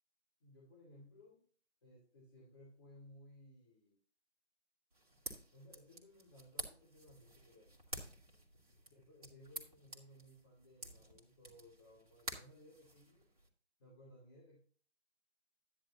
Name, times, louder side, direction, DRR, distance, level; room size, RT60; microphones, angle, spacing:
voice 1, 0.4-1.4 1.8-4.0 5.5-7.7 8.9-13.3 13.8-14.6, left 1 dB, 20° left, -3 dB, 2.5 m, -60 dB
sound 1, 4.9-13.5, right 1 dB, 30° right, 2.3 m, -51 dB
10.5 x 10.0 x 2.9 m, 0.43 s
figure-of-eight pair, 160°, 36 cm